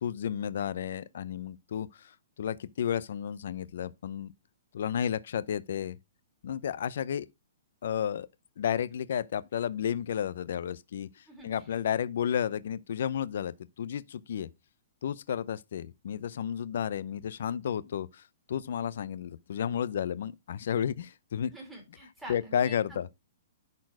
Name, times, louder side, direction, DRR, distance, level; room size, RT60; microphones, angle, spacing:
voice 1, 0.0-4.3 4.7-6.0 6.4-7.3 7.8-8.3 8.6-14.5 15.0-21.5 22.3-23.1, left 9 dB, 60° left, 0.5 m, -32 dB
voice 2, 21.5-23.1, right 1 dB, 5° right, 3.0 m, -46 dB
10.5 x 4.3 x 4.7 m
hypercardioid pair, 170°, 0 cm